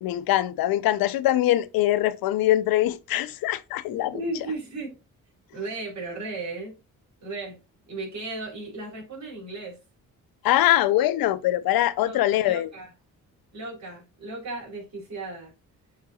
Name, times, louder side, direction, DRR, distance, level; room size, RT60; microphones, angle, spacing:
voice 1, 0.0-4.2 10.4-12.7, left 14 dB, 85° left, 0.6 m, -23 dB
voice 2, 4.1-5.0 5.5-6.8 7.2-7.6 7.9-9.8 12.0-12.9 13.5-15.5, right 2 dB, 50° right, 3.5 m, -35 dB
9.4 x 4.5 x 2.3 m
cardioid pair, 70°, 34 cm